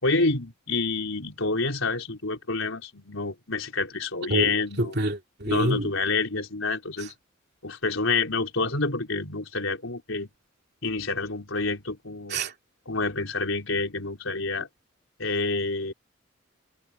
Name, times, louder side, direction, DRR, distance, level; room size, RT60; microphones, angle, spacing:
voice 1, 0.0-5.0 5.5-7.1 7.6-10.3 10.8-12.4 12.9-14.7 15.2-15.9, left 3 dB, 80° left, 4.2 m, -28 dB
voice 2, 4.3-5.9 12.3-12.5, right 1 dB, 55° right, 2.9 m, -27 dB
head